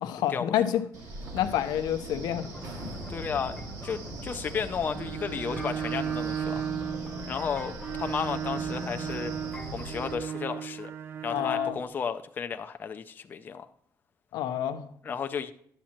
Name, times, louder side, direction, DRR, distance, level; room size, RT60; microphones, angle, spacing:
voice 1, 0.0-0.8 1.3-2.5 11.3-11.8 14.3-14.9, left 11 dB, 90° left, 9 dB, 0.8 m, -28 dB
Wind, 0.9-10.1, right 2 dB, 55° right, 1.6 m, -41 dB
sound 1, 2.4-10.9, left 3 dB, 10° left, 0.8 m, -45 dB
voice 2, 3.1-6.6 7.3-9.3 9.7-10.9 11.2-13.7 15.0-15.5, left 6 dB, 30° left, 8 dB, 0.4 m, -33 dB
Bowed string instrument, 4.8-11.8, right 9 dB, 35° right, 0.4 m, -35 dB
10.0 x 7.4 x 2.9 m, 0.65 s
cardioid pair, 165°, 7 cm